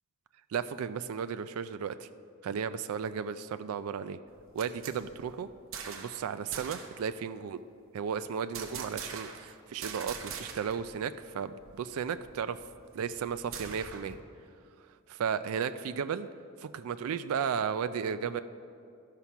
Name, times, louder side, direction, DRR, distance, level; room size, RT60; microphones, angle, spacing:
voice 1, 0.5-2.1 2.4-4.2 4.5-5.5 5.9-7.6 7.9-12.6 12.9-14.2 15.1-16.3 16.6-18.4, right 7 dB, 75° right, 12 dB, 0.3 m, -34 dB
sound 1, 4.3-6.2 6.5-7.0 8.5-9.5 9.8-10.9 11.2-11.3 11.6-14.2, right 6 dB, 60° right, 0.9 m, -43 dB
12.5 x 5.7 x 5.8 m, 2.5 s
head